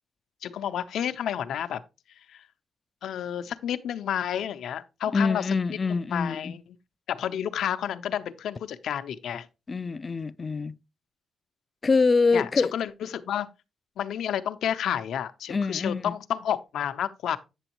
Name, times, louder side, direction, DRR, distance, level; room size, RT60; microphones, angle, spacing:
voice 1, 0.4-1.8 2.3-2.5 3.0-6.6 7.1-9.5 12.3-13.5 14.0-17.4, left 9 dB, 80° left, 0.6 m, -30 dB
voice 2, 5.1-6.5 9.7-10.7 11.8-12.8 15.5-16.1, left 4 dB, 30° left, 0.3 m, -25 dB
8.9 x 7.0 x 2.9 m
cardioid pair, 120°, 0 cm